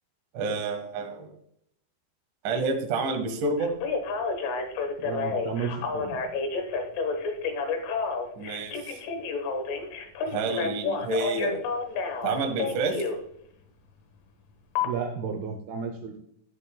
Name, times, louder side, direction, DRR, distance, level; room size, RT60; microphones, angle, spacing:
voice 1, 0.3-1.3 2.4-3.7 8.4-9.0 10.3-11.6 12.2-13.0, right 3 dB, 60° right, 4 dB, 2.3 m, -29 dB
Telephone, 3.6-13.2 14.8-14.9, left 4 dB, 70° left, 2.3 m, -30 dB
voice 2, 5.0-6.2 14.8-16.2, right 6 dB, 75° right, 4 dB, 2.5 m, -33 dB
11.0 x 7.3 x 2.2 m, 0.72 s
omnidirectional pair, 5.0 m